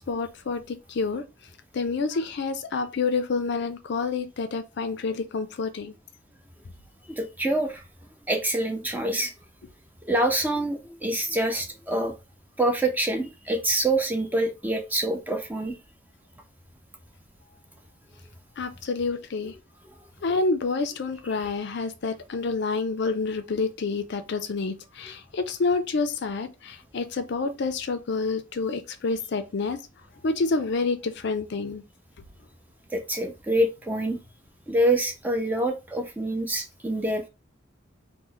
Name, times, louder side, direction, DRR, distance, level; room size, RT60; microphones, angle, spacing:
voice 1, 0.1-1.2 1.7-5.9 18.6-19.5 20.2-29.8 30.2-31.8, left 4 dB, 55° left, 0.4 m, -28 dB
voice 2, 7.2-7.8 8.3-9.3 10.1-12.1 12.6-15.8 32.9-34.2 34.7-37.3, right 1 dB, 10° right, 0.5 m, -26 dB
3.0 x 2.1 x 3.8 m
head